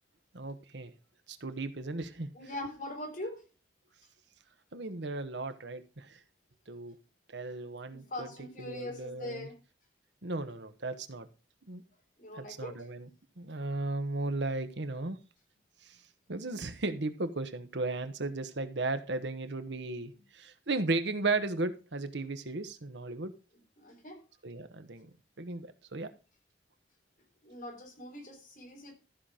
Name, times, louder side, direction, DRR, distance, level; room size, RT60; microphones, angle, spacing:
voice 1, 0.3-0.9 1.3-2.3 4.7-6.2 6.7-6.9 7.3-8.3 8.6-9.5 10.2-11.3 11.7-11.8 12.4-13.1 13.4-15.2 15.8-16.0 16.3-23.3 24.4-25.1 25.4-26.1, right 2 dB, 75° right, 10 dB, 1.2 m, -35 dB
voice 2, 2.3-3.4 7.9-9.6 12.2-12.8 23.8-24.2 27.4-28.9, left 1 dB, 45° left, 1 dB, 4.1 m, -42 dB
14.0 x 5.9 x 5.0 m, 0.31 s
head